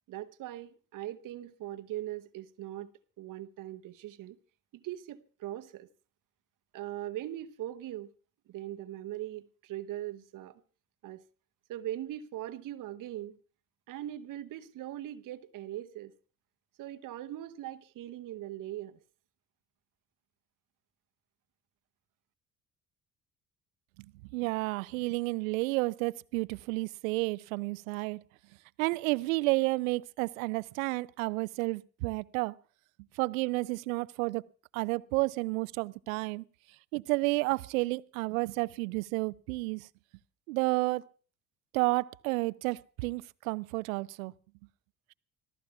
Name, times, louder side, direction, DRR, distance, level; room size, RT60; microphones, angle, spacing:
voice 1, 0.1-2.9 3.2-4.4 4.7-5.9 6.7-8.1 8.5-10.6 11.0-11.2 11.7-13.4 13.9-16.1 16.8-19.0, right 13 dB, 45° right, 0.9 m, -40 dB
voice 2, 24.3-28.2 28.8-32.6 33.1-34.4 34.7-36.4 36.9-39.9 40.5-41.0 41.7-44.3, right 23 dB, 70° right, 0.5 m, -31 dB
26.0 x 15.0 x 2.4 m
figure-of-eight pair, 50°, 43 cm